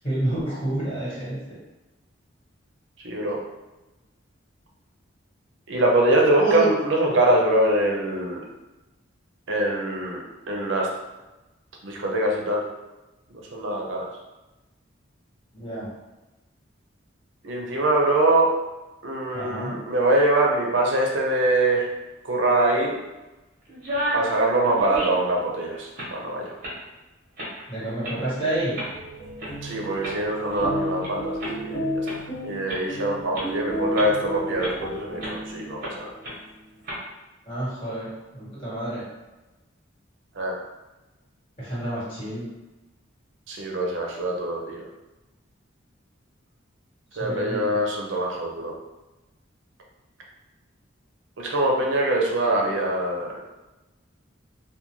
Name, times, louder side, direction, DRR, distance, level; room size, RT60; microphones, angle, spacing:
voice 1, 0.0-1.6 6.3-6.7 15.5-15.9 19.3-19.7 27.7-28.7 37.5-38.1 38.3-39.0 41.6-42.4 47.2-47.7, right 2 dB, 30° left, -10 dB, 1.4 m, -28 dB
voice 2, 3.0-3.4 5.7-8.5 9.5-10.9 11.8-12.6 13.3-14.1 17.4-18.5 19.0-21.9 22.2-23.0 24.1-26.5 29.6-32.1 32.4-36.1 40.4-40.6 43.5-44.8 47.2-48.7 51.4-53.4, right 1 dB, 70° right, -1 dB, 0.5 m, -23 dB
sound 1, 23.7-24.3 24.6-25.4 25.8-26.2 26.6-26.8 27.4-27.6 28.0-28.1 28.7-28.9 29.4-29.5 30.0-31.1 31.4-31.5 32.0-32.1 32.7-32.8 33.3-33.5 34.0-34.2 34.6-34.7 35.2-35.4 35.8-35.9 36.2-36.3 36.8-37.0, equal, 45° right, 0.8 m, -31 dB
sound 2, 28.3-35.8, equal, 65° left, 1.0 m, -33 dB
2.4 x 2.2 x 3.0 m, 1.1 s
head